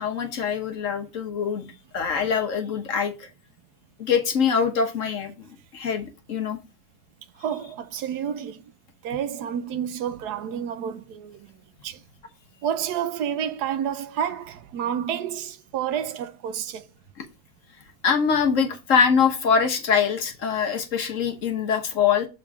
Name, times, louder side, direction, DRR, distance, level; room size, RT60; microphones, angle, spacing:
voice 1, 0.0-1.6 1.9-3.1 4.0-5.5 5.7-6.6 18.0-22.3, left 6 dB, 55° left, 1.3 m, -23 dB
voice 2, 7.4-8.6 9.0-11.5 11.8-12.0 12.6-16.9, right 9 dB, 80° right, 1.2 m, -29 dB
6.5 x 3.7 x 5.9 m
omnidirectional pair, 1.7 m